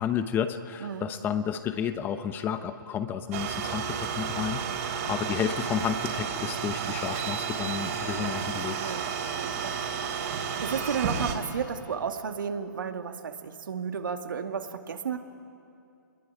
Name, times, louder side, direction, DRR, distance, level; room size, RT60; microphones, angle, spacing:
voice 1, 0.0-8.8, left 8 dB, 15° left, 10 dB, 1.0 m, -31 dB
sound 1, 3.3-11.4, right 7 dB, 40° right, 3.9 m, -32 dB
voice 2, 9.3-9.8 10.2-15.2, right 6 dB, 70° right, 5 dB, 2.4 m, -33 dB
26.5 x 21.5 x 9.2 m, 2.5 s
hypercardioid pair, 145°, 11 cm